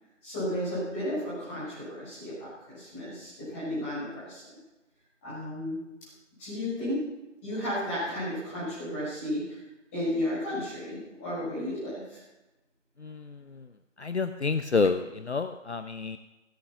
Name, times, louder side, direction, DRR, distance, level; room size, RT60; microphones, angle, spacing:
voice 1, 0.2-4.4 5.2-5.8 6.4-7.0 7.4-9.6 9.9-12.2, left 1 dB, 10° left, -10 dB, 6.3 m, -33 dB
voice 2, 13.0-13.7 14.0-16.2, left 4 dB, 60° left, 10 dB, 0.8 m, -29 dB
16.5 x 10.0 x 5.8 m, 1.0 s
figure-of-eight pair, 170°, 38 cm